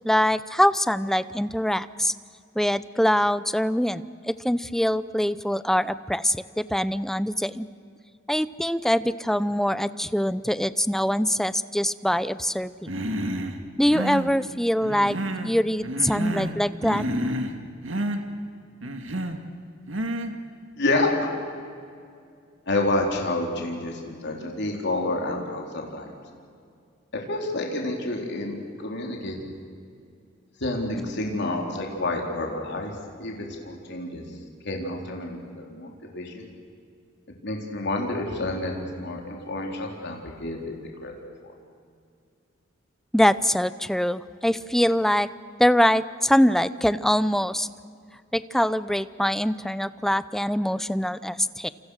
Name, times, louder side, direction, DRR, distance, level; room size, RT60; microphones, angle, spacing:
voice 1, 0.0-2.1 2.5-7.7 8.3-13.0 13.8-15.2 15.4-17.0 43.1-45.3 45.6-47.7 48.3-51.7, equal, ahead, 15 dB, 0.6 m, -23 dB
Human voice, 12.9-13.5 13.8-14.3 14.8-15.5 15.8-16.6 16.8-17.5 17.8-18.2 18.8-19.4 19.9-20.3, right 1 dB, 70° right, 2.2 m, -29 dB
voice 2, 20.8-21.3 22.7-26.1 27.1-29.4 30.6-32.9 33.2-34.2 34.6-36.5 37.4-40.7 41.0-41.1, left 2 dB, 60° left, 0 dB, 3.9 m, -29 dB
28.0 x 28.0 x 6.5 m, 2.3 s
head